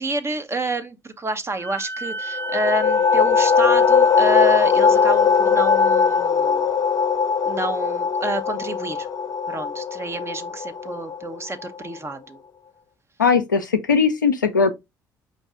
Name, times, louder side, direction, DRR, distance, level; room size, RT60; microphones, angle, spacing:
voice 1, 0.0-6.6 7.4-9.1 9.5-12.4, right 2 dB, 25° right, 1.0 m, -28 dB
Wind instrument woodwind instrument, 1.6-6.3, right 1 dB, 20° left, 0.9 m, -34 dB
sound 1, 2.3-11.8, left 6 dB, 40° left, 0.6 m, -19 dB
voice 2, 13.2-14.7, left 5 dB, 90° left, 0.5 m, -19 dB
5.5 x 2.6 x 3.6 m
figure-of-eight pair, 50°, 10 cm